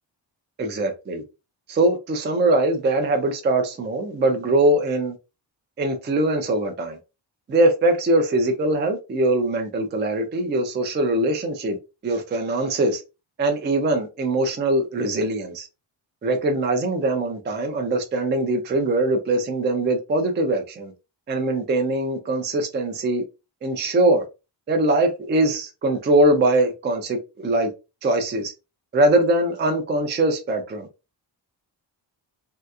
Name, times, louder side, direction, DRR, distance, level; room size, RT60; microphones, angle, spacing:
voice 1, 0.6-1.2 1.7-5.2 5.8-7.0 7.5-11.8 12.0-13.0 13.4-15.7 16.2-20.9 21.3-23.2 23.6-24.2 24.7-27.7 28.0-28.5 28.9-30.9, right 2 dB, 25° right, 0.4 m, -22 dB
3.2 x 2.8 x 2.3 m
wide cardioid pair, 170°, 45 cm